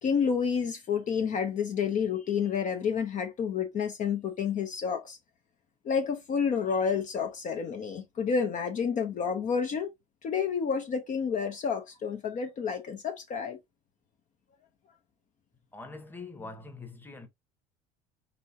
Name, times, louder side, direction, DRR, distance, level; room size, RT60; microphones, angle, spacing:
voice 1, 0.0-5.2 5.8-9.9 10.2-13.6, left 6 dB, 45° left, 0.8 m, -29 dB
voice 2, 15.7-17.3, left 3 dB, 10° left, 1.1 m, -43 dB
4.2 x 3.2 x 2.5 m
hypercardioid pair, 75°, 18 cm